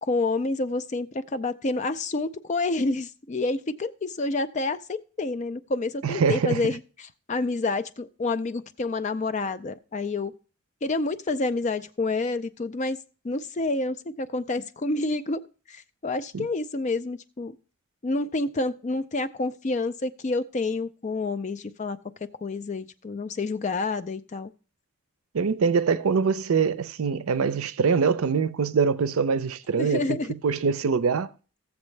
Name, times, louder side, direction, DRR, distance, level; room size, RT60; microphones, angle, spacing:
voice 1, 0.0-10.3 10.8-13.0 13.2-15.4 15.7-17.6 18.0-22.0 22.4-24.5 29.8-30.3, left 3 dB, 35° left, 0.4 m, -28 dB
voice 2, 6.0-6.6 16.3-16.5 25.3-30.0 30.4-31.3, right 5 dB, 85° right, 0.5 m, -23 dB
14.5 x 7.2 x 3.2 m
head